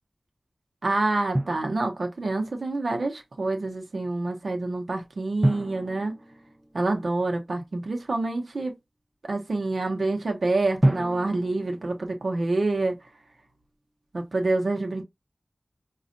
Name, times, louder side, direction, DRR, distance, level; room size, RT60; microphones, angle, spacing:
voice 1, 0.8-6.2 6.7-8.7 9.3-12.9 14.1-15.0, right 2 dB, 85° right, 0.8 m, -27 dB
Drum, 1.4-2.4 5.4-7.3 10.8-12.8, right 1 dB, 25° right, 0.5 m, -29 dB
5.1 x 2.4 x 2.6 m
wide cardioid pair, 40°, 0 cm